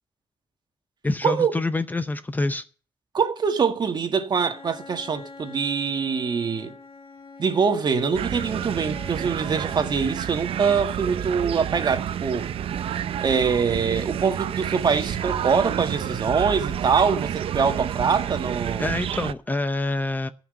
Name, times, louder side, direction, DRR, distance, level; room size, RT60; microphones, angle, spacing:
voice 1, 1.0-2.6 18.8-20.3, left 2 dB, 20° left, 0.7 m, -26 dB
voice 2, 3.1-6.7 7.4-12.5 13.2-19.0, right 6 dB, 50° right, 1.8 m, -24 dB
Bowed string instrument, 4.4-11.1, left 3 dB, 80° left, 3.0 m, -45 dB
sound 1, 8.1-19.3, right 9 dB, 80° right, 0.7 m, -29 dB
14.5 x 6.1 x 9.3 m
cardioid pair, 110°, 10 cm